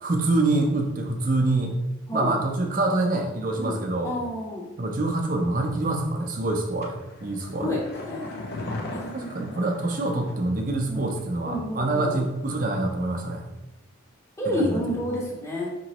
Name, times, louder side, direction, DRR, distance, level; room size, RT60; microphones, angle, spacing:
voice 1, 0.0-1.8 2.1-4.1 4.8-7.8 9.1-13.5 14.5-14.8, right 2 dB, 40° right, 3 dB, 0.5 m, -26 dB
voice 2, 4.0-4.7 7.6-7.8 8.0-8.3 8.9-9.6 10.9-11.1 11.4-12.2 14.4-15.7, left 1 dB, 15° left, -3 dB, 0.8 m, -29 dB
sound 1, 6.8-10.5 10.8-10.9, left 2 dB, 45° left, 0.5 m, -37 dB
4.9 x 3.0 x 2.9 m, 1.0 s
head